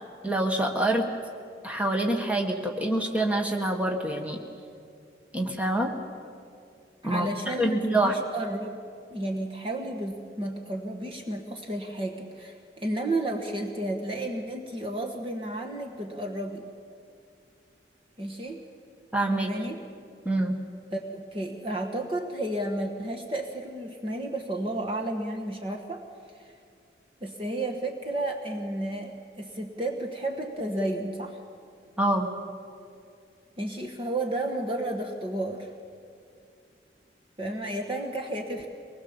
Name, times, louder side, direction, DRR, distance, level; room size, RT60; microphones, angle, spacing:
voice 1, 0.2-1.1 1.6-4.4 5.3-5.9 7.0-8.1 19.1-19.5 20.2-20.6 32.0-32.3, right 1 dB, 10° right, 2 dB, 1.6 m, -26 dB
voice 2, 7.0-8.8 9.1-16.6 18.2-18.7 19.3-19.8 20.9-26.0 26.4-26.5 27.2-31.4 33.6-35.7 37.4-38.7, right 1 dB, 30° right, 2 dB, 1.3 m, -32 dB
24.0 x 20.0 x 7.2 m, 2.4 s
head